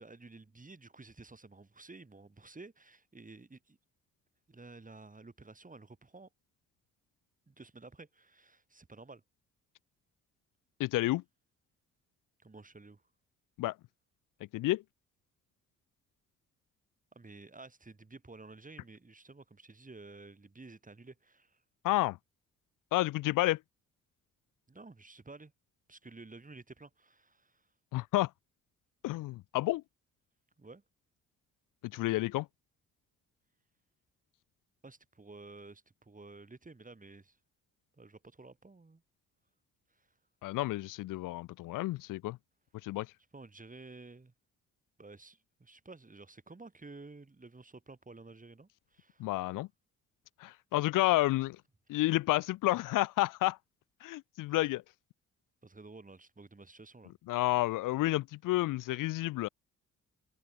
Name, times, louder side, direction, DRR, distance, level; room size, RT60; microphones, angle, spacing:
voice 1, 0.0-3.8 4.5-6.3 7.5-9.2 12.4-13.0 17.1-21.6 24.7-25.5 25.9-27.7 30.6-30.8 34.8-37.4 38.0-39.0 39.9-40.1 43.3-44.3 45.0-49.3 54.5-54.6 55.6-57.1, right 3 dB, 25° right, 7.0 m, -52 dB
voice 2, 10.8-11.2 13.6-13.7 14.5-14.8 21.8-22.2 22.9-23.6 27.9-28.3 29.0-29.8 31.8-32.5 40.4-42.4 42.8-43.1 49.2-49.7 50.4-51.6 51.9-53.6 54.0-54.8 57.3-59.5, left 17 dB, 75° left, 0.6 m, -30 dB
supercardioid pair, 60°, 33 cm